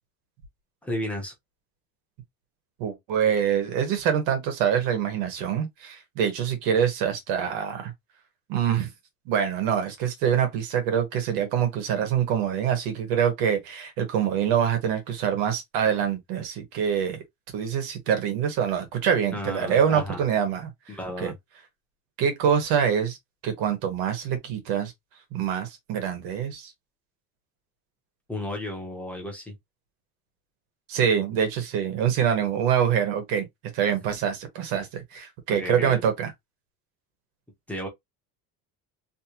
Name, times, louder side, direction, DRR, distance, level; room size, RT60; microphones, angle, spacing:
voice 1, 0.8-1.3 19.3-20.2 20.9-21.4 28.3-29.5 35.5-36.0 37.7-37.9, left 1 dB, 5° left, 0.9 m, -33 dB
voice 2, 2.8-7.9 8.5-8.9 9.3-17.2 17.5-20.7 21.2-21.3 22.2-23.2 23.4-24.9 25.3-26.7 30.9-33.4 33.7-36.3, right 8 dB, 75° right, 1.5 m, -25 dB
3.2 x 2.9 x 2.9 m
cardioid pair, 180°, 35 cm